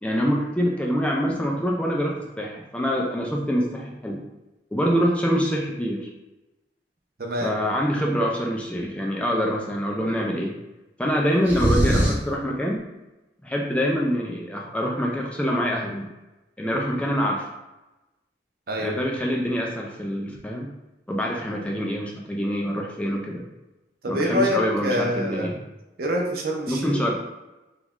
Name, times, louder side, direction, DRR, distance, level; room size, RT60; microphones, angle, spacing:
voice 1, 0.0-4.2 4.7-6.1 7.4-10.6 11.0-12.8 13.4-16.1 16.6-17.5 18.8-20.7 21.1-23.5 24.1-25.6 26.7-27.1, equal, 5° left, -1 dB, 0.3 m, -25 dB
voice 2, 7.2-7.6 18.7-19.0 24.0-25.5 26.0-27.1, equal, 55° right, 1 dB, 0.6 m, -26 dB
sound 1, 11.4-12.3, equal, 10° right, 0.7 m, -21 dB
3.1 x 2.4 x 3.5 m, 1.0 s
head